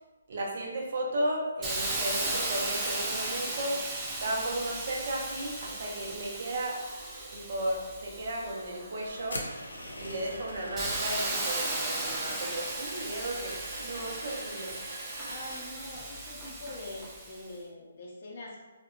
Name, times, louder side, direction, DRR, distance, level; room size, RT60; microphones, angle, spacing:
voice 1, 0.3-3.8 4.2-6.8 7.3-9.4 10.0-14.7, right 1 dB, 50° right, -2 dB, 0.6 m, -34 dB
Hiss, 1.6-9.2 9.7-17.4, right 2 dB, 10° right, 0.3 m, -36 dB
sound 1, 5.6-16.2, right 2 dB, 65° right, 1.0 m, -46 dB
sound 2, 9.3-11.5, left 2 dB, 90° left, 0.5 m, -42 dB
voice 2, 15.3-18.6, left 2 dB, 40° left, -4 dB, 0.5 m, -43 dB
2.7 x 2.1 x 2.4 m, 1.1 s
hypercardioid pair, 165°, 0 cm